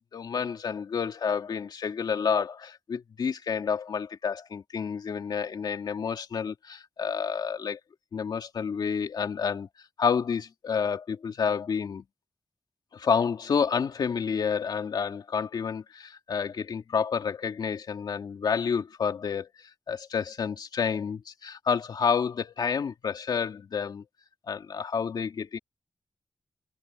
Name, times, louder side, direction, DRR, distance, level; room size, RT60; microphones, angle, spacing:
voice 1, 0.1-7.8 8.1-9.7 10.0-12.0 12.9-24.0 24.5-25.6, left 6 dB, 90° left, 2.6 m, -29 dB
cardioid pair, 70°, 7 cm